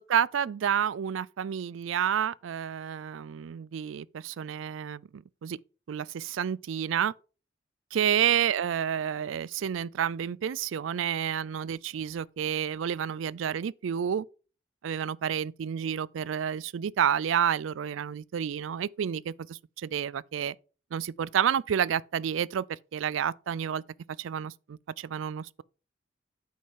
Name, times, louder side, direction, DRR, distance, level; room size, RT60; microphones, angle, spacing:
voice 1, 0.0-5.6 5.9-7.1 7.9-14.3 14.8-20.5 20.9-23.8 24.2-25.6, right 8 dB, 85° right, 0.4 m, -30 dB
8.8 x 5.5 x 5.1 m
head